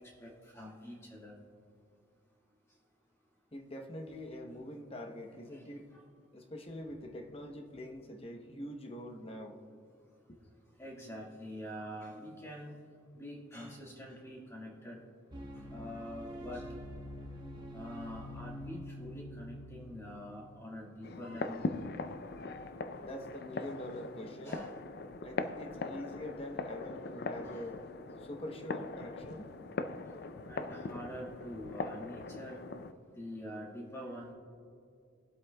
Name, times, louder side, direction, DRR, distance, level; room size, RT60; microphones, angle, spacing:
voice 1, 0.2-1.4 5.5-5.6 5.9-6.0 10.8-12.8 13.1-15.0 15.5-16.7 17.7-21.6 24.4-24.7 30.5-32.6 33.1-34.3, equal, 15° left, -3 dB, 1.7 m, -45 dB
voice 2, 3.5-5.9 6.3-9.6 10.3-10.4 23.0-24.7 25.2-27.8 28.2-29.5, left 1 dB, 30° left, 4 dB, 0.8 m, -44 dB
sound 1, 15.3-20.6, equal, 20° right, 0.9 m, -46 dB
sound 2, 21.0-32.9, left 3 dB, 50° left, 0.4 m, -41 dB
21.0 x 8.1 x 2.2 m, 2.4 s
head